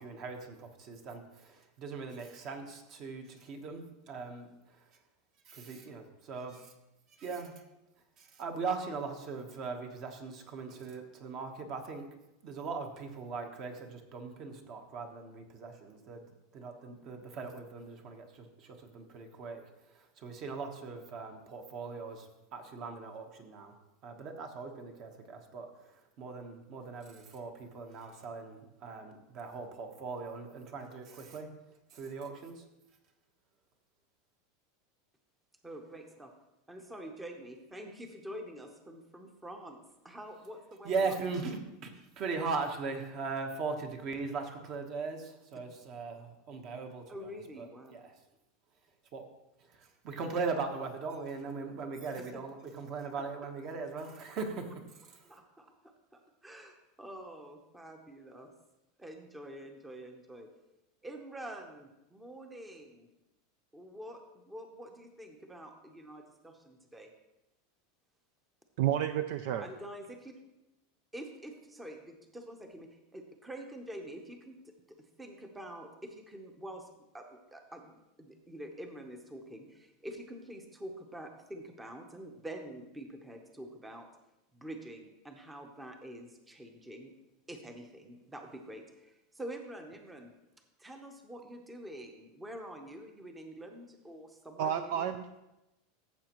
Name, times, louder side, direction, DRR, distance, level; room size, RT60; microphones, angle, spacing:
voice 1, 0.0-4.9 5.4-6.7 7.1-7.5 8.2-12.1 12.4-16.2 16.5-23.7 24.0-31.5 31.9-32.6 40.8-48.2 49.1-49.2 49.6-54.7 55.0-55.4, right 4 dB, 35° right, 5 dB, 1.2 m, -39 dB
voice 2, 35.6-36.3 36.7-39.8 40.0-41.2 47.1-47.9 52.2-52.4 55.3-55.7 56.1-58.5 59.0-60.5 61.0-63.1 63.7-67.1 69.6-70.3 71.1-76.9 77.1-84.1 84.5-87.1 87.5-90.3 90.8-95.1, right 1 dB, 10° right, 4 dB, 0.8 m, -46 dB
voice 3, 68.8-69.7 94.6-95.4, right 10 dB, 60° right, 10 dB, 0.4 m, -31 dB
14.0 x 7.4 x 3.0 m, 0.94 s
supercardioid pair, 160°, 0 cm